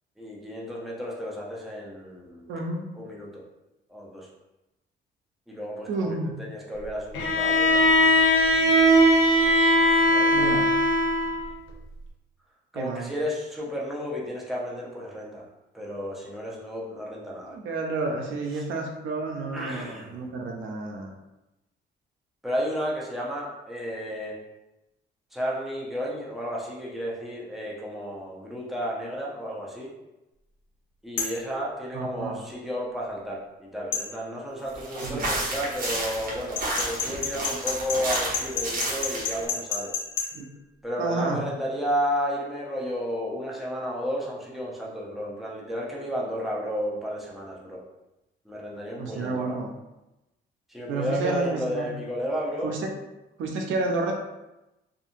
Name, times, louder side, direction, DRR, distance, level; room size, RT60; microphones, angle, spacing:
voice 1, 0.2-2.5 2.9-3.4 3.9-4.3 5.5-8.5 10.1-10.6 12.7-15.4 15.7-17.6 18.6-18.7 19.5-20.3 22.4-24.4 25.3-29.9 31.0-39.9 40.8-47.8 48.5-49.6 50.7-52.7, equal, ahead, -4 dB, 0.7 m, -32 dB
voice 2, 2.5-2.9 5.9-6.4 10.3-10.7 12.7-13.1 17.5-21.1 31.9-32.4 35.0-35.3 37.1-37.2 40.3-40.5 41.0-41.4 49.0-49.7 50.9-51.9 52.6-52.9 53.4-54.1, right 3 dB, 75° right, 1 dB, 0.5 m, -30 dB
Bowed string instrument, 7.1-11.4, equal, 90° left, 0.6 m, -19 dB
sound 1, 31.2-31.4 33.9-34.1 36.6-40.3, left 6 dB, 70° left, 0.9 m, -29 dB
sound 2, 34.7-39.4, right 1 dB, 45° right, 0.9 m, -31 dB
2.7 x 2.5 x 2.5 m, 0.98 s
cardioid pair, 90°, 20 cm